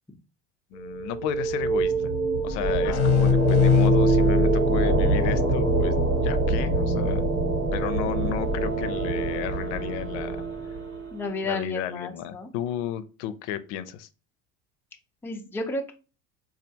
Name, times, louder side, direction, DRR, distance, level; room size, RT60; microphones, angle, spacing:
voice 1, 0.7-2.1 2.4-7.2 7.7-10.4 11.4-14.1, left 11 dB, 80° left, 13 dB, 0.5 m, -33 dB
sound 1, 0.8-11.4, right 3 dB, 75° right, 1.3 m, -25 dB
sound 2, 2.8-6.3, left 8 dB, 45° left, 0.7 m, -24 dB
voice 2, 11.1-12.5 15.2-15.9, left 2 dB, 5° left, 2 dB, 0.4 m, -32 dB
4.3 x 2.4 x 2.7 m, 0.33 s
supercardioid pair, 125°, 35 cm